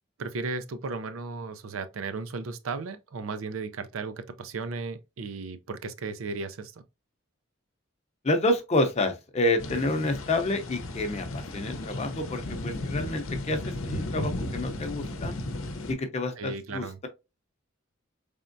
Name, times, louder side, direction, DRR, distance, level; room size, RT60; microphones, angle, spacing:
voice 1, 0.2-6.7 16.4-17.0, right 4 dB, 85° right, 0.5 m, -35 dB
voice 2, 8.2-15.3 15.9-17.1, left 1 dB, 35° left, 0.7 m, -28 dB
sound 1, 9.6-15.9, left 1 dB, 90° left, 0.7 m, -35 dB
4.3 x 3.5 x 2.6 m
head